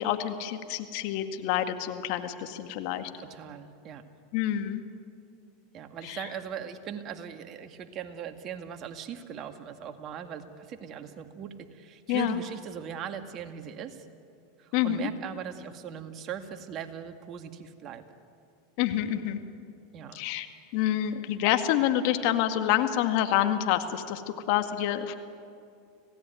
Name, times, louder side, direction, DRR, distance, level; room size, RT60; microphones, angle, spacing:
voice 1, 0.0-3.1 4.3-4.8 6.0-6.2 12.1-12.4 14.7-15.1 18.8-19.4 20.1-20.5 20.7-25.1, left 11 dB, 60° left, 7 dB, 2.0 m, -27 dB
voice 2, 3.2-4.0 5.7-14.1 14.6-18.0 19.9-20.2, right 8 dB, 40° right, 7 dB, 2.0 m, -39 dB
27.0 x 17.5 x 9.4 m, 2.4 s
hypercardioid pair, 95°, 0 cm